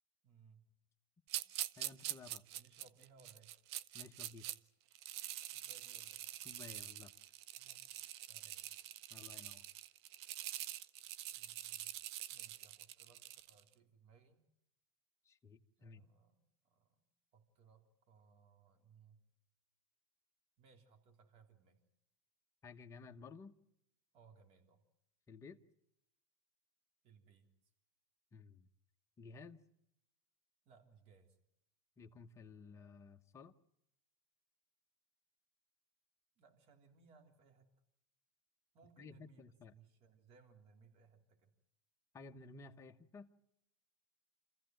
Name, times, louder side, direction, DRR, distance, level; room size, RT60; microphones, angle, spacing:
voice 1, 0.2-0.6 1.4-1.6 2.5-3.6 5.5-6.3 7.6-7.8 8.3-8.7 11.3-11.9 12.3-14.4 15.8-17.0 17.3-19.2 20.6-21.8 24.1-24.8 27.0-27.5 30.7-31.4 36.4-37.7 38.7-41.5, right 5 dB, 45° right, 5 dB, 3.5 m, -66 dB
sound 1, 1.3-4.6 4.9-13.6, right 13 dB, 65° right, 0.8 m, -45 dB
voice 2, 1.8-2.4 3.9-4.5 6.4-7.1 9.1-9.6 15.2-16.0 22.6-23.5 25.3-25.6 28.3-28.7 29.2-29.6 32.0-33.5 39.0-39.7 42.1-43.3, left 4 dB, 20° left, 6 dB, 1.1 m, -55 dB
26.5 x 15.0 x 9.1 m, 0.80 s
supercardioid pair, 130°, 15 cm